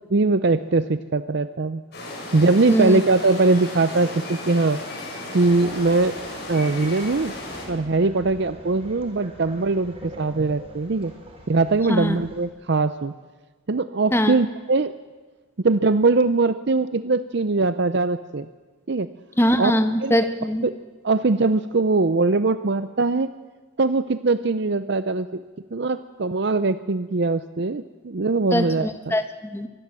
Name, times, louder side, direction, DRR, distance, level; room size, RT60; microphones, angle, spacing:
voice 1, 0.1-1.8 2.3-4.8 5.3-6.2 6.5-7.3 7.7-11.1 11.5-13.1 13.7-14.9 15.6-18.5 18.9-19.1 19.6-19.7 20.0-20.2 20.6-20.8 21.0-23.3 23.8-25.3 25.7-29.1, right 3 dB, 55° right, 12 dB, 0.6 m, -21 dB
sound 1, 1.9-7.7, left 1 dB, 50° left, 7.8 m, -35 dB
voice 2, 2.7-3.0 11.9-12.2 14.1-14.3 19.4-20.6 28.5-29.7, equal, 10° left, 8 dB, 1.4 m, -22 dB
sound 2, 5.4-12.5, right 1 dB, 30° right, 4.4 m, -44 dB
24.5 x 20.0 x 7.6 m, 1.3 s
head